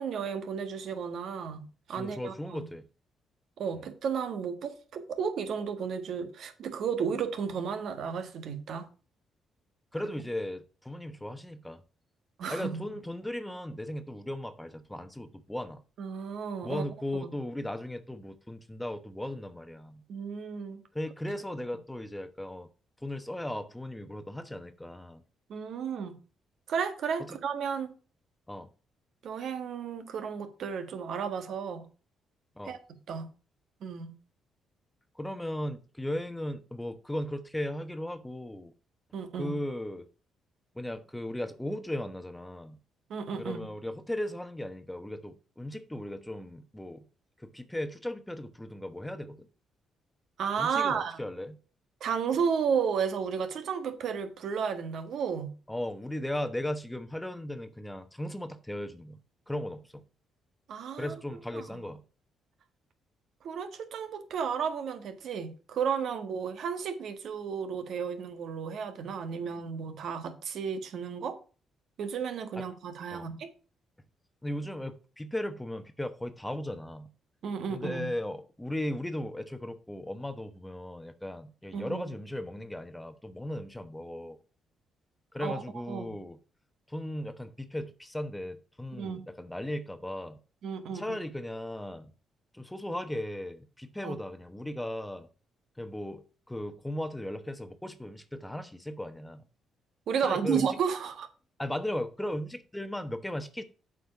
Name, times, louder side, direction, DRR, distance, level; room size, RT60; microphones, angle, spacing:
voice 1, 0.0-2.6 3.6-8.9 12.4-12.8 16.0-16.8 17.2-17.3 20.1-20.8 25.5-26.1 26.7-27.9 29.2-31.8 32.6-32.8 33.1-33.3 33.8-34.1 39.1-39.5 43.1-43.6 50.4-51.2 52.0-55.5 60.7-61.1 61.5-61.9 63.4-71.4 72.0-73.5 77.4-78.1 81.7-82.1 85.4-85.6 85.9-86.1 88.9-89.2 90.6-91.2 94.0-94.2 100.1-101.3, right 6 dB, 70° right, 1.6 m, -33 dB
voice 2, 2.0-2.9 3.7-3.9 9.9-11.8 12.5-15.8 16.6-20.0 20.9-22.7 23.0-25.2 27.2-27.4 28.5-28.7 32.6-32.7 35.1-38.7 39.4-40.1 40.7-42.8 43.4-47.0 47.4-49.5 50.6-51.6 55.7-59.2 59.5-60.0 61.0-62.0 72.6-72.7 73.1-73.3 74.4-77.1 77.7-84.4 85.3-86.4 86.9-90.4 90.9-92.1 92.5-95.3 95.8-99.4 100.2-100.8 101.6-103.6, left 1 dB, 10° left, 1.0 m, -37 dB
8.1 x 5.0 x 5.8 m
cardioid pair, 90°, 0 cm